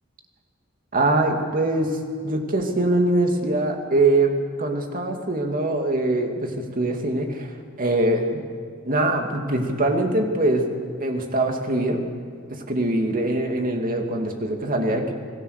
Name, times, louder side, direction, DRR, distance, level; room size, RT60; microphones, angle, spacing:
voice 1, 0.9-2.0 2.2-7.5 7.8-8.4 8.8-12.0 12.5-15.1, right 2 dB, 40° right, 3 dB, 2.6 m, -23 dB
27.0 x 18.0 x 6.7 m, 2.1 s
head